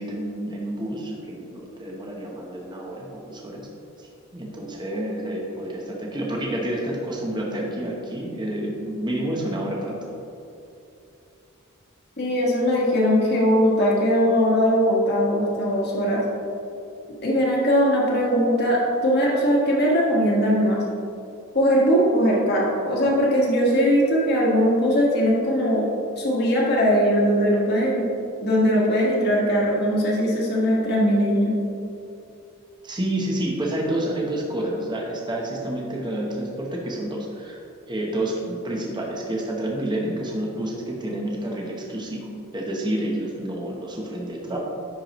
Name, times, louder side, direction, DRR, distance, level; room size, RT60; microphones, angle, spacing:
voice 1, 0.0-3.7 4.3-10.1 32.8-37.6 37.9-44.6, right 1 dB, 20° right, -2 dB, 0.8 m, -29 dB
voice 2, 12.2-16.2 17.2-20.8 21.5-25.9 26.2-28.1 28.4-31.6, equal, 50° left, -4 dB, 1.5 m, -20 dB
10.0 x 4.6 x 3.0 m, 2.6 s
head